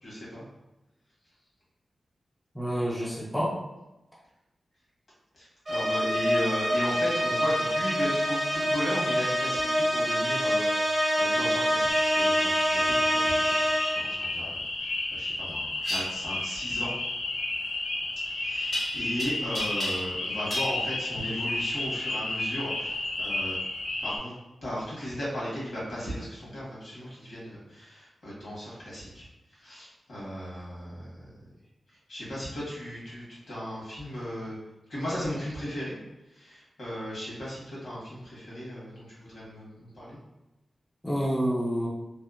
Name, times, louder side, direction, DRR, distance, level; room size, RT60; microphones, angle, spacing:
voice 1, 0.0-0.5 5.3-13.6 13.9-16.9 18.3-23.6 24.0-24.3 24.6-29.3 29.6-31.4 32.1-34.6 34.9-36.0 36.3-40.2, equal, 65° left, -7 dB, 1.2 m, -36 dB
voice 2, 2.5-3.6 41.0-41.9, equal, 5° left, -6 dB, 0.4 m, -28 dB
sound 1, 5.7-14.2, equal, 35° right, 0.7 m, -26 dB
sound 2, 11.9-24.2, left 2 dB, 80° left, 0.3 m, -32 dB
sound 3, 15.8-16.0 18.7-19.2 19.5-20.2 20.5-20.7, left 1 dB, 45° left, 0.8 m, -32 dB
2.7 x 2.1 x 2.4 m, 0.99 s
wide cardioid pair, 150°, 0 cm